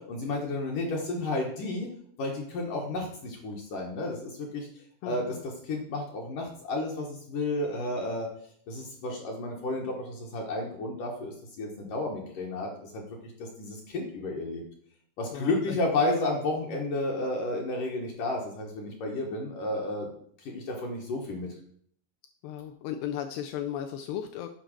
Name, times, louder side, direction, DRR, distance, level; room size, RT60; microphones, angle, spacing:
voice 1, 0.0-1.9 2.2-4.7 5.0-5.3 5.6-8.3 8.7-14.6 15.2-20.1 20.4-21.5, left 2 dB, 65° left, -1 dB, 2.4 m, -32 dB
voice 2, 5.0-5.4 15.3-15.8 22.4-24.5, left 10 dB, 80° left, 5 dB, 2.5 m, -35 dB
8.9 x 5.0 x 6.5 m, 0.62 s
omnidirectional pair, 5.1 m